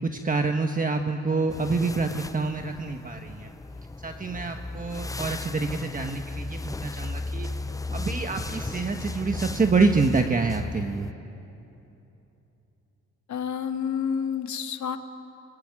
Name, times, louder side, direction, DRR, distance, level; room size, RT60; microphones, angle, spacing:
voice 1, 0.0-3.5 4.0-7.5 7.9-11.1, right 4 dB, 25° right, 5 dB, 1.4 m, -27 dB
sound 1, 1.5-11.1, left 3 dB, 10° left, 0.6 m, -35 dB
voice 2, 13.3-15.0, left 7 dB, 70° left, 8 dB, 1.7 m, -29 dB
26.0 x 22.0 x 9.9 m, 2.9 s
cardioid pair, 90°, 30 cm